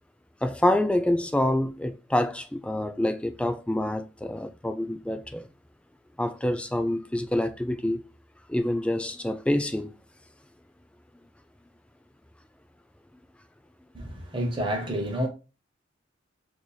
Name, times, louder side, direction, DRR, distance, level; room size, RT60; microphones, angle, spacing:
voice 1, 0.4-5.5 6.2-8.0 8.5-9.9, left 1 dB, 5° left, 0.3 m, -27 dB
voice 2, 13.9-15.3, right 1 dB, 25° right, 0.8 m, -29 dB
4.5 x 2.7 x 2.3 m
head